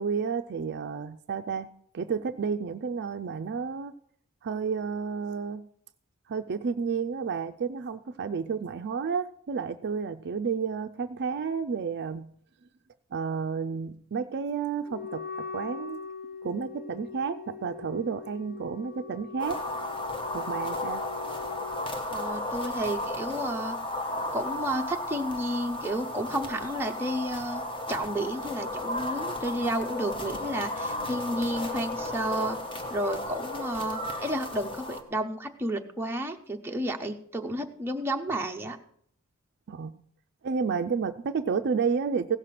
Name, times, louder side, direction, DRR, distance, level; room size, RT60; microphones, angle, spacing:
voice 1, 0.0-1.7 1.9-3.9 4.4-5.7 6.3-12.4 13.1-16.0 16.4-19.6 20.3-21.0 39.7-39.9 40.4-42.4, right 5 dB, 50° right, 10 dB, 0.4 m, -31 dB
Wind instrument woodwind instrument, 14.9-21.9, left 6 dB, 45° left, 0.6 m, -41 dB
sound 1, 19.4-35.0, left 1 dB, 25° left, 1.3 m, -34 dB
voice 2, 22.1-23.8 24.3-27.6 27.9-32.6 32.9-38.8, right 1 dB, 10° right, 2 dB, 0.7 m, -31 dB
16.0 x 6.6 x 5.8 m, 0.66 s
head